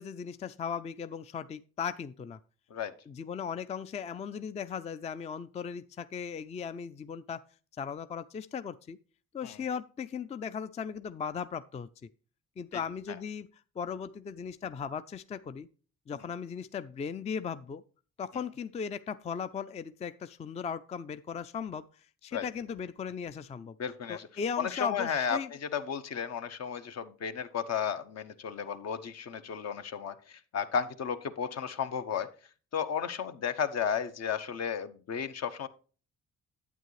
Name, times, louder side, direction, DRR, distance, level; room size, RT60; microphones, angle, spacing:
voice 1, 0.0-2.4 3.1-7.4 7.8-9.0 9.3-11.9 12.6-15.7 16.1-17.8 18.2-23.8 24.1-25.5, left 6 dB, 25° left, 0.3 m, -37 dB
voice 2, 23.8-24.3 24.6-25.4 25.7-32.3 32.7-35.7, left 7 dB, 60° left, 0.8 m, -33 dB
9.2 x 8.4 x 3.1 m
cardioid pair, 90°, 30 cm